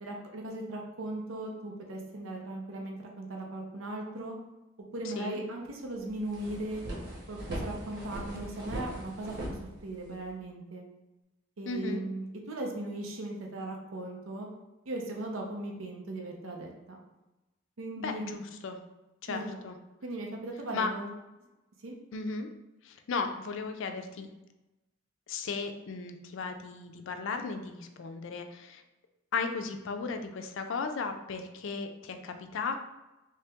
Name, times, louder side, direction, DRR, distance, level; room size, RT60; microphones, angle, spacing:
voice 1, 0.0-4.4 4.9-6.8 7.3-9.4 9.8-10.8 11.6-14.5 14.9-17.0 17.8-18.4 19.3-19.5 20.0-21.1 21.8-21.9, right 1 dB, 85° right, 1 dB, 0.7 m, -38 dB
voice 2, 5.0-5.4 11.6-12.0 18.0-18.8 19.2-19.8 20.7-20.9 22.1-22.5 22.8-24.3 25.3-28.8 29.3-32.8, left 4 dB, 65° left, 7 dB, 0.4 m, -35 dB
sound 1, 5.7-5.8 6.1-10.3, right 1 dB, 60° right, 1.0 m, -39 dB
3.2 x 2.8 x 3.4 m, 1.0 s
head